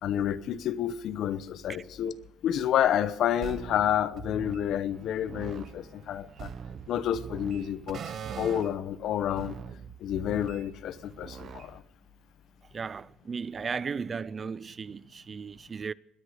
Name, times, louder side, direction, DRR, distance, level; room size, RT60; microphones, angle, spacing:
voice 1, 0.0-2.1 2.4-6.5 6.9-8.0 8.4-9.5 10.0-11.8, left 10 dB, 65° left, 0.9 m, -29 dB
sound 1, 3.4-4.6 4.9-8.7 9.3-11.8, right 7 dB, 50° right, 0.9 m, -42 dB
voice 2, 12.7-15.9, right 5 dB, 35° right, 0.4 m, -36 dB
20.5 x 10.5 x 5.0 m
cardioid pair, 110°, 0 cm